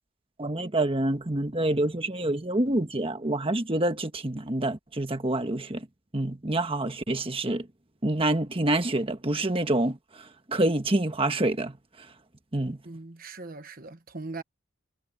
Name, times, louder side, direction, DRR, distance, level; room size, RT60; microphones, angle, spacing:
voice 1, 0.4-5.8 6.1-7.7 8.0-10.0 10.5-11.8 12.5-12.8, right 1 dB, 25° right, 1.3 m, -27 dB
voice 2, 12.8-14.4, right 3 dB, 45° right, 1.2 m, -40 dB
head